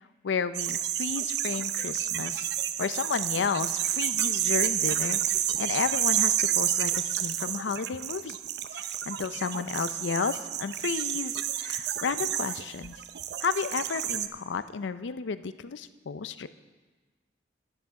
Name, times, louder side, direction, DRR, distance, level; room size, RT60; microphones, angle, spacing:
voice 1, 0.2-2.5 2.8-8.4 8.7-13.0 13.4-16.5, left 5 dB, 85° left, 13 dB, 0.5 m, -32 dB
sound 1, 0.5-14.3, right 11 dB, 60° right, 0.5 m, -30 dB
12.0 x 10.5 x 4.8 m, 1.3 s
head